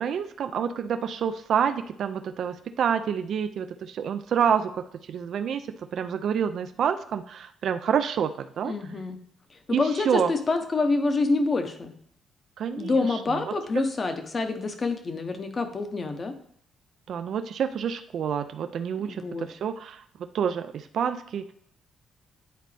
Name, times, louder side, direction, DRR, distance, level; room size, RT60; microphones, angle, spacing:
voice 1, 0.0-8.7 9.7-10.3 12.6-13.5 17.1-20.0 20.3-21.5, right 8 dB, 65° right, 9 dB, 0.4 m, -28 dB
voice 2, 8.6-9.2 9.5-11.9 12.8-16.3 19.1-19.5, left 3 dB, 35° left, 7 dB, 1.0 m, -27 dB
9.3 x 4.0 x 3.3 m, 0.63 s
cardioid pair, 90°, 0 cm